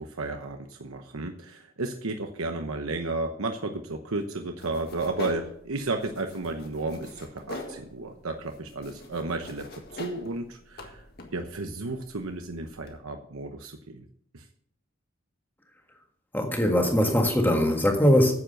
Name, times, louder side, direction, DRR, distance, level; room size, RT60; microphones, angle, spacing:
voice 1, 0.0-11.0 11.3-14.1 14.3-14.5, right 2 dB, 85° right, 5 dB, 1.0 m, -33 dB
sound 1, 4.6-13.0, left 2 dB, 45° left, 1.7 m, -44 dB
voice 2, 16.3-18.3, equal, 10° left, 2 dB, 1.6 m, -21 dB
9.6 x 7.7 x 6.6 m, 0.63 s
head